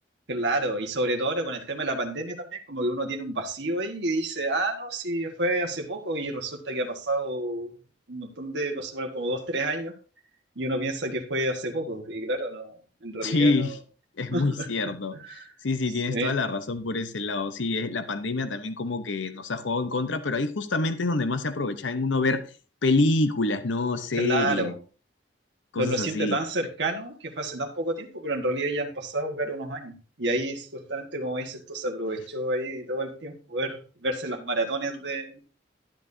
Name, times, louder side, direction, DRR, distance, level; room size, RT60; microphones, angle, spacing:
voice 1, 0.3-7.7 8.1-9.9 10.5-13.8 14.3-14.7 15.1-15.5 16.1-16.3 24.1-24.8 25.7-35.4, right 1 dB, 70° right, 1 dB, 1.5 m, -29 dB
voice 2, 13.2-13.8 14.2-15.4 15.6-22.4 22.8-24.7 25.7-26.4, left 3 dB, 90° left, 10 dB, 0.9 m, -26 dB
12.0 x 10.5 x 2.7 m, 0.35 s
head